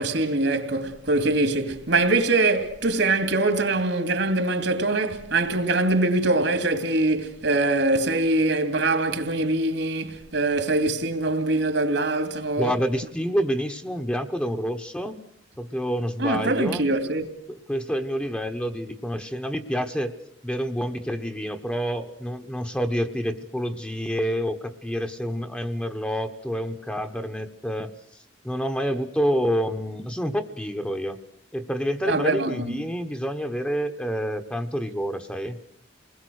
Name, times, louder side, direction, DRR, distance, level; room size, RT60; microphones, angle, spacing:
voice 1, 0.0-12.7 16.2-17.3 32.1-32.8, right 2 dB, 75° right, 2.6 m, -23 dB
voice 2, 12.6-15.2 15.6-16.8 17.5-20.1 20.4-27.9 28.4-31.2 31.5-35.6, equal, 5° left, 1.0 m, -28 dB
29.5 x 20.5 x 6.4 m
head